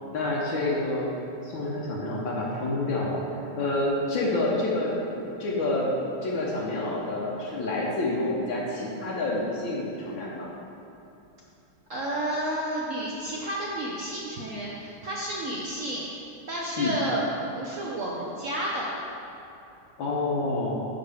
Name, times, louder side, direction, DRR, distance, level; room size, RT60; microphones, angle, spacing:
voice 1, 0.1-1.1 1.4-5.9 6.2-10.5 16.8-17.0 20.0-20.8, left 2 dB, 70° left, -4 dB, 1.6 m, -28 dB
voice 2, 11.9-16.0 16.5-17.2 17.5-18.9, right 1 dB, 65° right, -4 dB, 0.7 m, -31 dB
9.2 x 6.4 x 3.4 m, 2.7 s
omnidirectional pair, 2.3 m